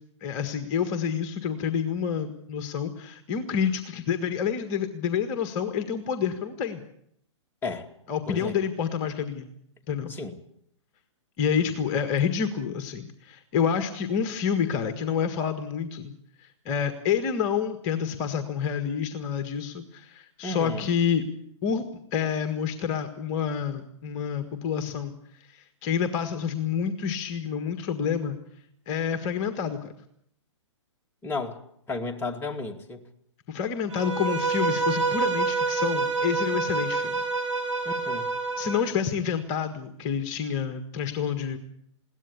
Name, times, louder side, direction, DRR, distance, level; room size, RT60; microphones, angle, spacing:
voice 1, 0.2-6.8 8.1-9.5 9.9-10.1 11.4-16.1 16.4-21.3 21.6-21.8 22.1-28.4 28.9-29.9 33.5-37.2 38.6-41.6, left 7 dB, 35° left, 8 dB, 1.7 m, -28 dB
voice 2, 20.4-20.9 31.2-31.6 31.9-33.0 37.9-38.3, left 3 dB, 15° left, 2 dB, 2.4 m, -33 dB
Bowed string instrument, 33.9-38.9, right 4 dB, 85° right, 7.1 m, -27 dB
21.5 x 17.5 x 8.4 m, 0.70 s
hypercardioid pair, 130°, 16 cm